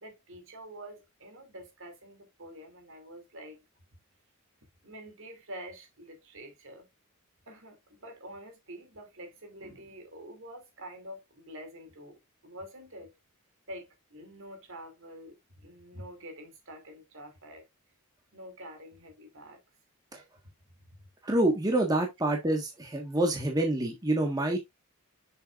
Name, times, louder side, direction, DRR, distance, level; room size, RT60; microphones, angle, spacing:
voice 1, 0.0-3.6 4.8-6.9 7.5-13.1 13.7-17.7 18.3-19.6 20.8-21.1, equal, 60° right, 2.7 m, -47 dB
voice 2, 21.2-24.6, right 1 dB, 15° right, 1.4 m, -27 dB
7.6 x 6.6 x 2.5 m
head